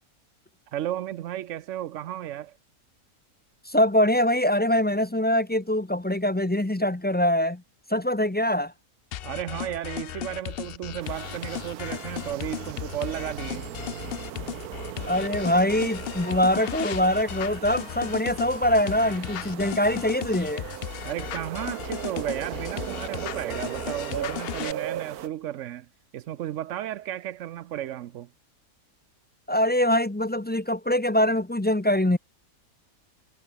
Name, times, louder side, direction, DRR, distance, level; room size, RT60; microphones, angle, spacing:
voice 1, 0.7-2.5 9.2-13.7 21.0-25.9 26.1-28.3, right 12 dB, 65° right, 0.9 m, -34 dB
voice 2, 3.7-7.6 7.9-8.7 15.1-20.6 29.5-32.2, left 1 dB, 10° left, 0.4 m, -23 dB
sound 1, 9.1-24.7, left 12 dB, 75° left, 0.5 m, -36 dB
sound 2, 11.0-25.3, right 11 dB, 90° right, 1.4 m, -38 dB
omnidirectional pair, 1.5 m